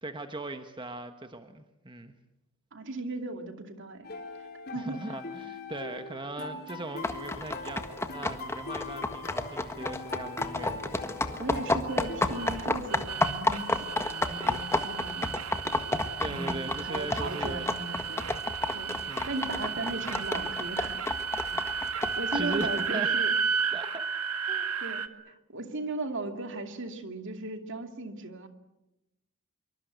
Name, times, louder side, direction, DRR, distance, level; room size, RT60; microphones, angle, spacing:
voice 1, 0.0-2.1 4.7-10.8 16.2-17.6 19.1-20.2 21.5-21.6 22.3-23.1 23.7-24.1 24.5-24.7, right 2 dB, 20° right, 7 dB, 1.2 m, -39 dB
voice 2, 2.7-4.1 4.7-5.0 11.4-15.3 16.3-18.3 18.7-21.0 22.2-23.3 24.8-28.5, right 2 dB, 60° right, 6 dB, 2.5 m, -37 dB
sound 1, 4.0-12.7, left 3 dB, 45° left, 4.1 m, -41 dB
sound 2, 7.0-22.9, left 2 dB, 10° left, 1.5 m, -31 dB
sound 3, 11.9-25.1, right 6 dB, 75° right, 1.9 m, -33 dB
26.0 x 24.0 x 8.1 m, 0.94 s
head